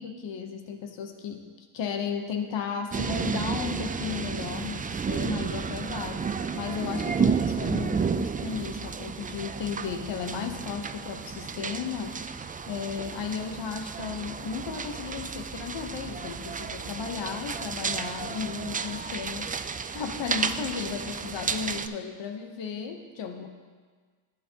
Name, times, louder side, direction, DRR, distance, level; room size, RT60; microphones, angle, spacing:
voice 1, 0.0-1.5 1.7-19.5 19.9-23.5, left 6 dB, 75° left, 5 dB, 1.0 m, -35 dB
sound 1, 2.9-21.9, right 6 dB, 20° right, 0.3 m, -32 dB
11.0 x 8.3 x 2.8 m, 1.5 s
cardioid pair, 55°, 44 cm